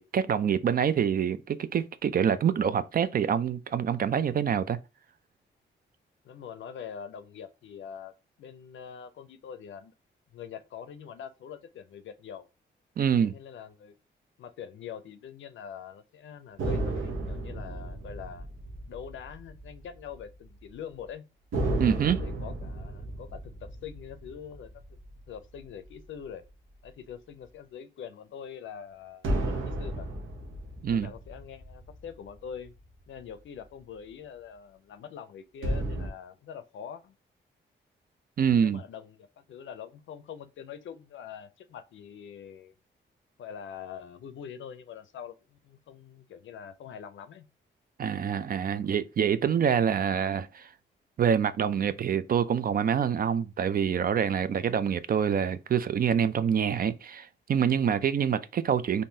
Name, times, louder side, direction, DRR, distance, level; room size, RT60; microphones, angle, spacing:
voice 1, 0.0-4.8 13.0-13.3 21.8-22.2 30.8-31.1 38.4-38.8 48.0-50.7 51.2-59.0, right 8 dB, 50° right, 0.4 m, -26 dB
voice 2, 6.2-9.9 10.3-12.5 13.2-14.0 14.4-18.5 18.9-21.3 22.2-25.0 25.3-26.4 26.8-30.1 30.9-32.7 33.1-37.2 38.5-42.7 43.4-47.5 57.8-58.0, left 8 dB, 75° left, 0.5 m, -44 dB
sound 1, 16.6-20.3 20.6-20.7 21.5-26.1 29.2-32.9 35.6-36.1, right 1 dB, 85° right, 0.8 m, -34 dB
3.6 x 2.6 x 2.7 m
cardioid pair, 75°, 20 cm